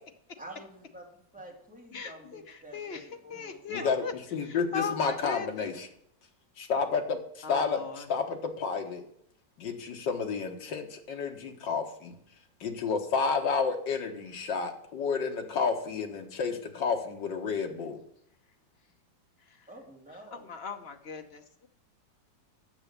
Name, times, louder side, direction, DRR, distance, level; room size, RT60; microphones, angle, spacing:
voice 1, 0.4-3.9 19.7-20.5, right 1 dB, 5° right, -3 dB, 2.5 m, -48 dB
voice 2, 1.9-2.4 2.7-3.0 3.3-4.1 4.5-5.7 7.4-8.1 20.3-21.7, left 6 dB, 45° left, 6 dB, 0.8 m, -38 dB
voice 3, 3.7-5.9 6.6-9.0 9.6-12.2 12.6-18.0, left 5 dB, 70° left, 4 dB, 2.0 m, -31 dB
8.8 x 6.8 x 6.6 m, 0.70 s
omnidirectional pair, 2.0 m